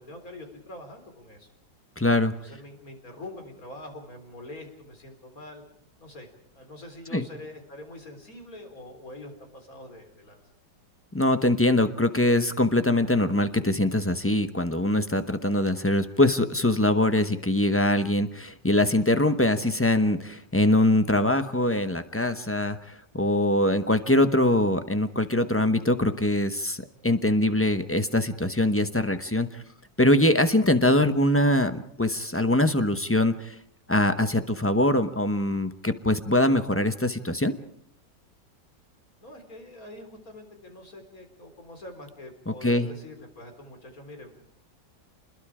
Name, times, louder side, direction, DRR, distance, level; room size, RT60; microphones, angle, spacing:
voice 1, 0.0-1.5 2.4-5.6 6.0-10.4 39.2-44.5, left 1 dB, 50° left, 5 dB, 4.3 m, -44 dB
voice 2, 2.0-2.3 7.1-7.2 11.1-29.6 30.0-33.6 33.9-37.5 42.6-42.9, left 1 dB, 10° left, 10 dB, 0.6 m, -23 dB
28.5 x 21.5 x 5.0 m, 0.65 s
omnidirectional pair, 1.9 m